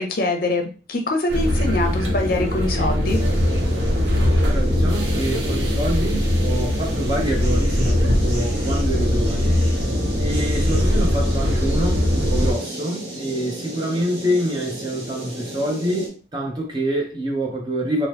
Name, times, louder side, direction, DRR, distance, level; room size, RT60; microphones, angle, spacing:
voice 1, 0.0-3.2, left 2 dB, 50° left, 3 dB, 0.5 m, -24 dB
sound 1, 1.3-12.5, left 1 dB, 85° right, 0.7 m, -21 dB
sound 2, 3.0-16.1, right 1 dB, 65° right, 1.0 m, -34 dB
voice 2, 4.4-9.6 10.2-18.1, right 1 dB, 25° right, -1 dB, 0.8 m, -26 dB
2.9 x 2.0 x 3.3 m, 0.35 s
head